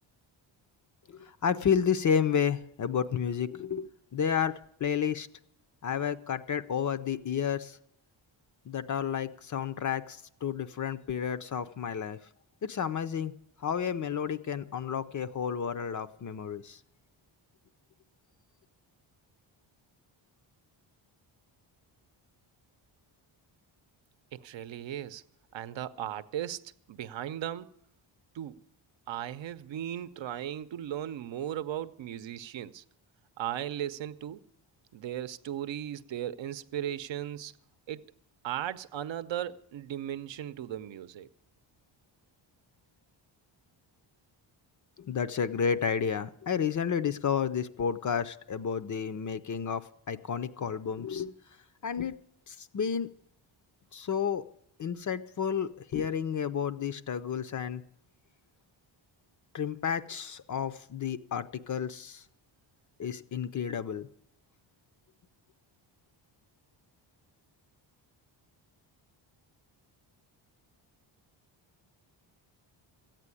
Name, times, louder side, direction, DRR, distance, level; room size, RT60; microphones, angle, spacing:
voice 1, 1.1-5.3 5.8-7.8 8.7-12.2 12.6-13.3 13.6-16.8 45.0-51.3 51.8-52.1 52.5-53.1 53.9-54.4 54.8-57.8 59.5-62.2 63.0-64.1, left 7 dB, 40° left, 0.5 m, -31 dB
voice 2, 24.3-25.2 25.5-27.7 28.3-28.6 29.1-32.8 33.4-34.4 34.9-37.6 37.9-38.0 38.4-41.3, right 11 dB, 65° right, 0.7 m, -37 dB
14.5 x 9.0 x 9.7 m
wide cardioid pair, 175°, 48 cm